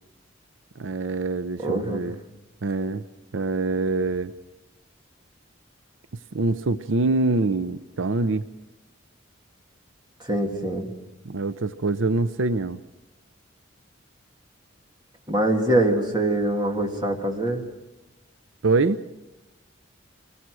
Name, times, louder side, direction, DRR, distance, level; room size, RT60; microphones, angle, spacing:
voice 1, 0.8-2.2 2.6-3.0 3.3-4.3 6.3-8.4 11.2-12.8 18.6-19.0, right 3 dB, 75° right, 13 dB, 0.6 m, -24 dB
voice 2, 1.6-2.1 10.2-10.9 15.3-17.6, right 1 dB, 25° right, 2 dB, 2.6 m, -24 dB
25.5 x 19.5 x 6.3 m, 1.0 s
head